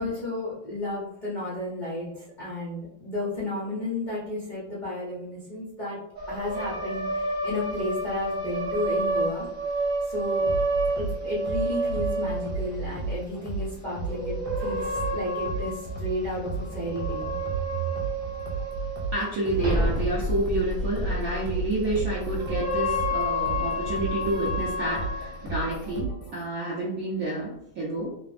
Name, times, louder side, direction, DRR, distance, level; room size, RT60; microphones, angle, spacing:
voice 1, 0.0-6.0 6.3-9.5 10.1-10.5 10.9-17.4, left 1 dB, 65° left, -9 dB, 0.4 m, -33 dB
sound 1, 6.1-12.9 14.0-19.1 19.5-26.0, right 1 dB, 15° right, 0.6 m, -30 dB
sound 2, 10.5-26.5, right 3 dB, 85° left, 1.4 m, -34 dB
voice 2, 19.1-28.1, right 1 dB, 80° right, -6 dB, 0.7 m, -29 dB
3.2 x 2.1 x 2.4 m, 0.77 s
omnidirectional pair, 2.2 m